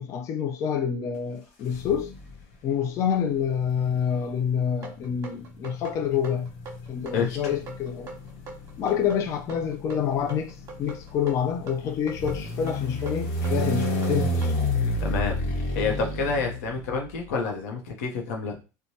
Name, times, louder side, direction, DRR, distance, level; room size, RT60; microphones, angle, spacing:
voice 1, 0.0-2.1 2.6-6.5 6.9-8.1 8.8-14.5, left 8 dB, 40° left, 0.3 m, -27 dB
sound 1, 1.7-2.4 3.5-17.2, left 1 dB, 70° left, 1.0 m, -31 dB
sound 2, 4.8-14.6, right 4 dB, 40° right, 1.0 m, -41 dB
voice 2, 7.1-7.5 15.0-15.3 15.7-18.6, left 4 dB, 90° left, 0.8 m, -28 dB
3.1 x 2.2 x 2.7 m
supercardioid pair, 120°, 8 cm